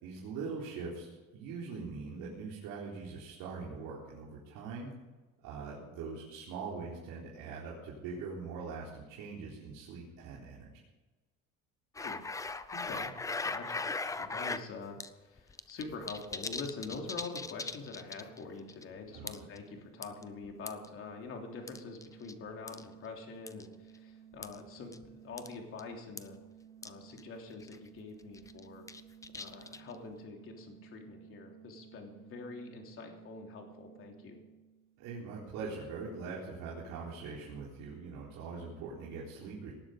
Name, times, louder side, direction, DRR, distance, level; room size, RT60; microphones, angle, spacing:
voice 1, 0.0-4.9 5.4-10.8 19.1-19.3 35.0-39.7, right 4 dB, 80° right, -5 dB, 4.1 m, -42 dB
sound 1, 11.9-14.6 15.0-15.1 15.4-18.4 18.7-18.8 19.3-19.6 20.0-20.9 21.7-22.3 22.7-22.8 23.5-23.6 24.4-24.6 24.9-25.0 25.4-25.5 25.8-25.9 26.2-26.3 26.8-26.9 27.2-27.3 27.6-27.9 28.3-29.9, left 3 dB, 10° left, 0.5 m, -38 dB
voice 2, 12.7-13.1 13.4-26.4 26.8-28.8 29.3-34.4, left 4 dB, 40° left, 2 dB, 3.3 m, -45 dB
sound 2, 17.7-35.2, right 8 dB, 50° right, 5.7 m, -57 dB
19.0 x 12.0 x 5.1 m, 1.2 s
cardioid pair, 160°, 33 cm